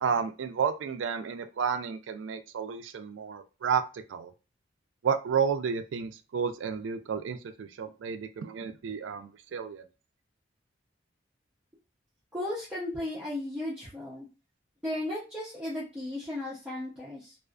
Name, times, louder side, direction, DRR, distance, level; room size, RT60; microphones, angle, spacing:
voice 1, 0.0-4.3 5.0-9.8, right 6 dB, 85° right, 9 dB, 0.3 m, -31 dB
voice 2, 12.3-14.3 14.8-17.4, left 1 dB, 5° right, -9 dB, 0.6 m, -35 dB
2.4 x 2.4 x 2.2 m, 0.31 s
head